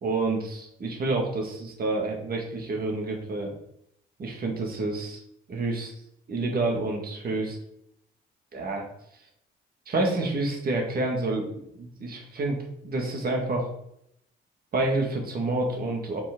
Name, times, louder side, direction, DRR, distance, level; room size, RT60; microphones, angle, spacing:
voice 1, 0.0-3.5 4.2-5.2 5.5-5.9 6.3-7.6 8.5-8.9 9.9-13.7 14.7-16.2, right 2 dB, 50° right, 1 dB, 1.9 m, -28 dB
5.6 x 4.6 x 3.8 m, 0.73 s
cardioid pair, 90°, 20 cm